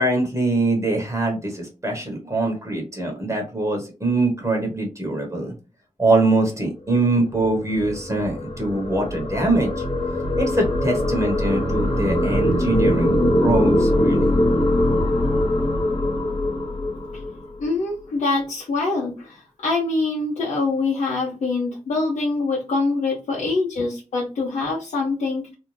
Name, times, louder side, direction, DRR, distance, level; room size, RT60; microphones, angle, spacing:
voice 1, 0.0-5.5 6.0-9.7 10.4-14.3, right 2 dB, 25° right, 2 dB, 1.0 m, -23 dB
sound 1, 7.1-17.7, left 1 dB, 55° left, 1.1 m, -22 dB
voice 2, 17.6-25.5, left 3 dB, 85° left, -4 dB, 0.7 m, -24 dB
2.6 x 2.1 x 3.1 m, 0.32 s
cardioid pair, 65°, 12 cm